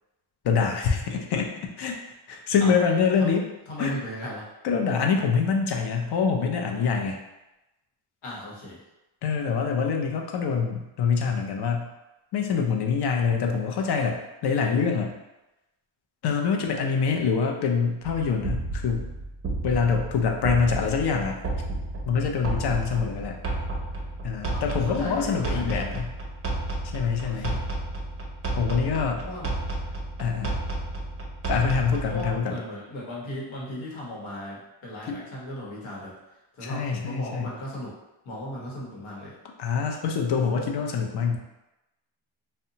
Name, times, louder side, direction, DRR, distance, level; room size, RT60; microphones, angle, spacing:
voice 1, 0.4-1.5 1.8-2.0 2.3-3.4 3.8-4.0 4.6-7.2 9.2-11.9 12.3-15.1 16.2-19.1 19.6-21.4 22.1-23.4 24.2-26.1 26.9-27.6 28.6-29.2 30.2-30.6 31.5-32.5 35.0-35.2 36.6-37.5 39.6-41.4, left 5 dB, 55° left, 2 dB, 0.5 m, -25 dB
voice 2, 3.7-4.5 8.2-8.8 24.5-26.0 27.2-27.6 29.2-29.5 31.8-36.1 36.6-37.9 38.2-39.4, left 1 dB, 85° left, -4 dB, 1.0 m, -37 dB
sound 1, 18.0-32.4, right 2 dB, 30° right, 0.5 m, -32 dB
2.7 x 2.1 x 2.7 m, 0.98 s
cardioid pair, 110°, 48 cm